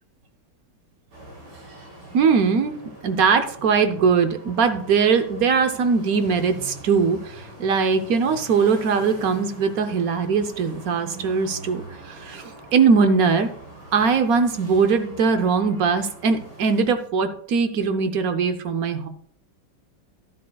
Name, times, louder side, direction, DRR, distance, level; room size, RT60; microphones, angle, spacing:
sound 1, 1.1-16.8, right 1 dB, 90° right, 5.0 m, -43 dB
voice 1, 2.1-13.5 13.9-19.1, right 5 dB, 60° right, 8 dB, 1.0 m, -21 dB
12.0 x 11.0 x 2.3 m, 0.62 s
omnidirectional pair, 2.1 m